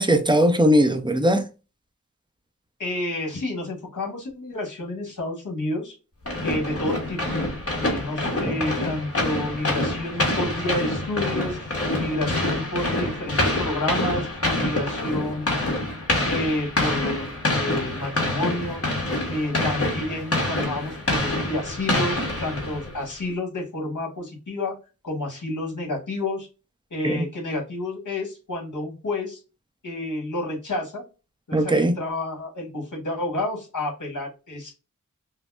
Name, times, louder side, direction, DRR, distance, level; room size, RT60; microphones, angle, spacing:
voice 1, 0.0-1.4 8.4-8.6 27.0-27.3 31.5-32.0, equal, 15° right, 0.6 m, -19 dB
voice 2, 2.8-6.0 6.4-7.2 7.8-14.3 14.6-15.8 16.2-18.8 19.3-24.7 25.0-26.5 26.9-29.4 29.8-31.0 31.5-34.7, left 2 dB, 65° left, 1.7 m, -30 dB
sound 1, 6.3-23.0, left 1 dB, 45° left, 1.3 m, -26 dB
5.3 x 2.0 x 2.5 m
wide cardioid pair, 75°, 33 cm